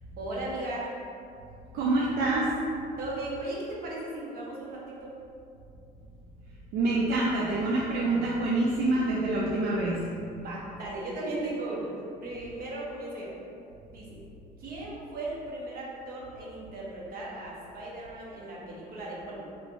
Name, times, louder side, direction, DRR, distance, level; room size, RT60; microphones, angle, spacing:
voice 1, 0.2-0.9 3.0-5.1 10.4-11.9 12.2-13.3 13.9-14.2 14.6-19.5, right 2 dB, 60° right, -5 dB, 0.9 m, -37 dB
voice 2, 1.7-2.5 6.7-10.0, right 2 dB, 80° right, -4 dB, 0.4 m, -26 dB
3.1 x 3.1 x 2.5 m, 2.5 s
cardioid pair, 110°, 17 cm